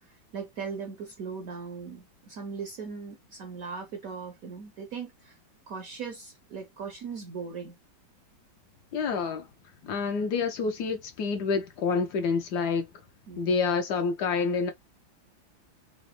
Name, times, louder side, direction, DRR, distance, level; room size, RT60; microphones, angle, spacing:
voice 1, 0.0-5.4 5.7-7.8 13.3-13.7, right 5 dB, 70° right, 0.8 m, -39 dB
voice 2, 8.9-9.5 9.8-12.9 13.4-14.7, left 5 dB, 70° left, 1.0 m, -28 dB
3.9 x 2.1 x 3.1 m
omnidirectional pair, 2.1 m